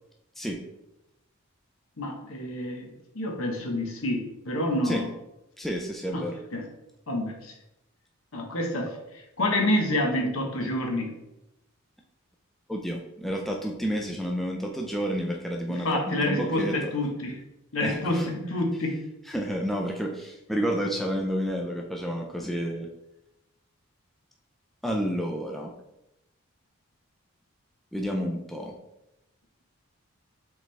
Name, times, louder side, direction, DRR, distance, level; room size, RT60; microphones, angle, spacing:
voice 1, 2.0-5.1 6.1-6.7 7.1-7.5 8.3-11.2 15.7-17.4 17.7-19.0, left 1 dB, 75° left, 1 dB, 1.0 m, -28 dB
voice 2, 5.6-6.3 12.7-16.8 17.8-18.2 19.3-22.9 24.8-25.7 27.9-28.7, equal, ahead, 1 dB, 0.3 m, -30 dB
4.8 x 3.4 x 3.2 m, 0.88 s
head